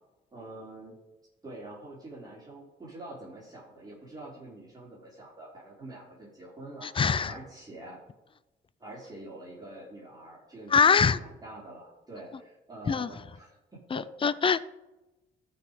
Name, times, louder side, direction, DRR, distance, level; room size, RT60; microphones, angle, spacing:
voice 1, 0.3-1.0 1.4-6.9 7.3-8.0 8.8-14.1, right 2 dB, 20° right, -6 dB, 3.7 m, -46 dB
voice 2, 6.8-7.3 10.7-11.2 12.9-13.1 13.9-14.6, left 6 dB, 25° left, 17 dB, 0.5 m, -23 dB
14.0 x 4.9 x 5.2 m, 1.0 s
cardioid pair, 90°, 20 cm